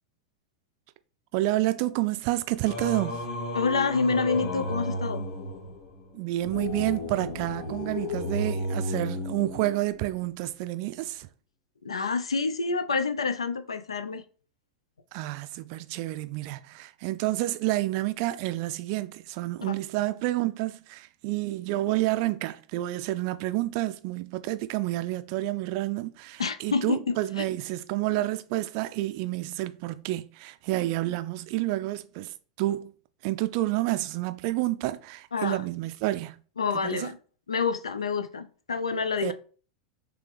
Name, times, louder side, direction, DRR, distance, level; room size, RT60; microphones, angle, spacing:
voice 1, 1.3-3.2 6.1-11.3 15.1-32.9 33.2-36.4 36.8-37.1 39.2-39.3, right 16 dB, 50° right, 0.3 m, -29 dB
Singing, 2.6-10.0, left 1 dB, 65° left, 1.1 m, -33 dB
voice 2, 3.5-5.3 11.8-14.2 19.6-19.7 26.4-27.5 35.3-35.6 36.6-37.2 37.5-39.3, left 4 dB, 80° left, 0.4 m, -28 dB
3.4 x 3.3 x 3.3 m
figure-of-eight pair, 90°, 3 cm